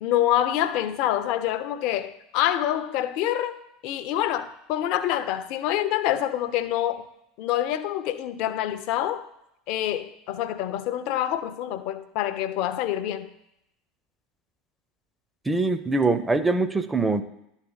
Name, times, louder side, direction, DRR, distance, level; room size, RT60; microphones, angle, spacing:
voice 1, 0.0-3.5 3.8-7.1 7.4-9.3 9.7-13.3, left 12 dB, 50° left, 0.5 m, -26 dB
voice 2, 15.5-17.2, right 3 dB, 10° right, 0.6 m, -23 dB
11.5 x 4.4 x 3.9 m
figure-of-eight pair, 75°, 0 cm